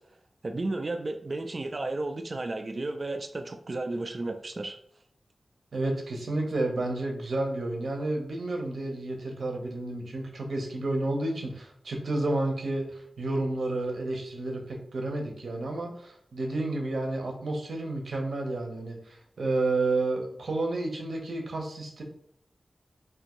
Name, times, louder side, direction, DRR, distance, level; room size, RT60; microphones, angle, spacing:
voice 1, 0.4-4.8, right 2 dB, 45° right, 5 dB, 0.3 m, -33 dB
voice 2, 5.7-22.0, right 2 dB, 85° right, 2 dB, 0.8 m, -31 dB
3.4 x 2.6 x 3.0 m, 0.66 s
wide cardioid pair, 75°, 0 cm